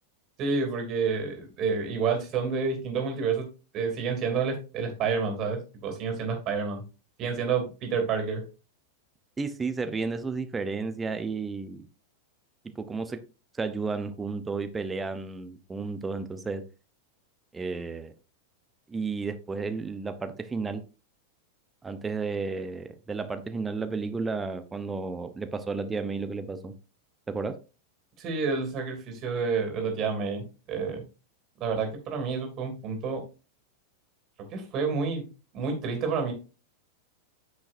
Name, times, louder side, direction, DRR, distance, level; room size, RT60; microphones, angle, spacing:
voice 1, 0.4-3.4 3.7-6.8 7.2-8.4 28.2-31.0 31.6-33.2 34.5-35.3 35.5-36.3, right 5 dB, 35° right, 4 dB, 2.8 m, -29 dB
voice 2, 9.4-11.8 12.8-13.2 13.5-16.6 17.5-18.1 18.9-20.8 21.8-26.7 27.3-27.6, right 4 dB, 15° right, 10 dB, 0.8 m, -32 dB
9.9 x 6.5 x 2.6 m, 0.32 s
figure-of-eight pair, 90°, 0 cm